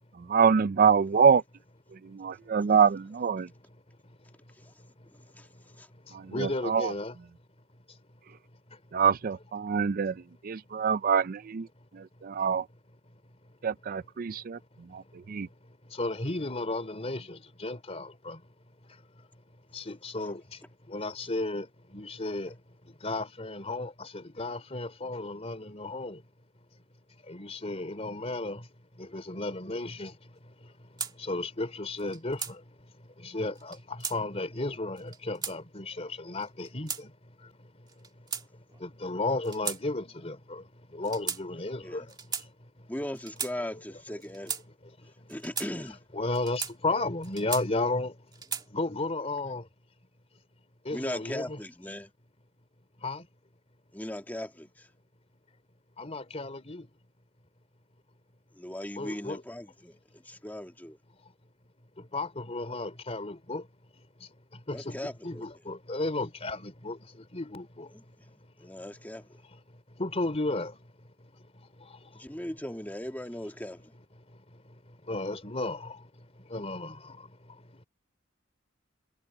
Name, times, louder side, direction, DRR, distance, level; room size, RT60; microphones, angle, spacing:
voice 1, 0.2-1.4 1.9-3.5 6.1-6.9 8.9-11.7 11.9-12.7 13.6-14.6 14.9-15.5, right 6 dB, 45° right, 0.4 m, -25 dB
voice 2, 6.3-7.1 15.9-18.4 19.7-20.4 20.9-21.7 21.9-22.5 23.0-26.2 27.3-28.6 29.0-30.1 31.2-32.6 33.2-37.1 38.8-40.6 40.9-42.0 45.7-45.8 46.1-48.1 48.7-49.6 50.8-51.6 53.0-53.2 56.0-56.9 59.0-59.4 62.1-63.6 64.7-67.0 67.3-67.9 70.0-70.7 75.1-76.0 76.5-77.2, left 2 dB, 35° left, 3.3 m, -33 dB
sound 1, 31.0-31.1 32.0-32.5 33.6-34.2 35.0-35.6 36.4-37.0 37.9-38.8 39.4-39.8 40.1-40.3 41.0-41.4 42.1-42.5 43.1-43.5 44.2-44.6 45.3-45.7 46.3-46.7 47.2-47.9 48.3-48.7, right 6 dB, 20° right, 2.0 m, -36 dB
voice 3, 42.9-44.5 45.3-46.0 50.9-52.1 53.9-54.9 58.6-60.0 60.2-61.0 64.7-65.4 67.9-68.0 68.6-69.2 72.1-73.8, left 1 dB, 10° left, 1.8 m, -38 dB
head